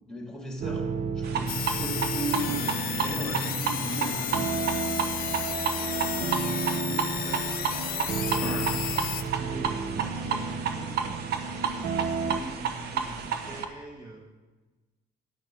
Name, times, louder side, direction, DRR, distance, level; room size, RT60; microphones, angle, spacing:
voice 1, 0.1-0.9 1.2-4.6 8.4-9.2, right 1 dB, 5° left, 0 dB, 2.4 m, -35 dB
sound 1, 0.6-12.4, right 5 dB, 45° right, 0.6 m, -33 dB
sound 2, 1.2-13.7, right 7 dB, 70° right, 1.0 m, -32 dB
sound 3, 1.5-9.2, left 12 dB, 60° left, 0.6 m, -33 dB
voice 2, 6.2-7.6 7.9-11.2 11.7-14.3, right 1 dB, 25° right, -1 dB, 1.6 m, -44 dB
10.5 x 5.9 x 6.8 m, 1.2 s
cardioid pair, 110°, 17 cm